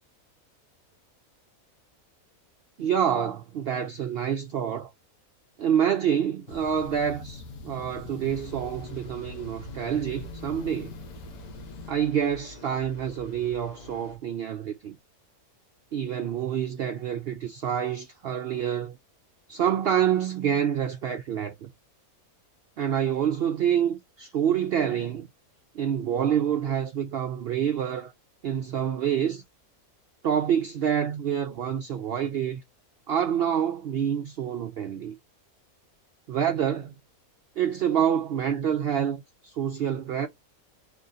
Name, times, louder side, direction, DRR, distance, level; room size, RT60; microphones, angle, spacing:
voice 1, 2.8-4.9 5.6-10.9 11.9-15.0 15.9-19.0 19.5-21.7 22.8-25.3 25.7-28.1 28.4-29.4 30.2-32.6 33.1-35.1 36.3-36.9 37.6-40.3, right 9 dB, 70° right, 0.5 m, -27 dB
sound 1, 6.5-11.9, left 4 dB, 90° left, 1.1 m, -43 dB
sound 2, 8.2-14.2, equal, 45° left, 0.6 m, -46 dB
3.0 x 2.5 x 3.8 m
omnidirectional pair, 1.5 m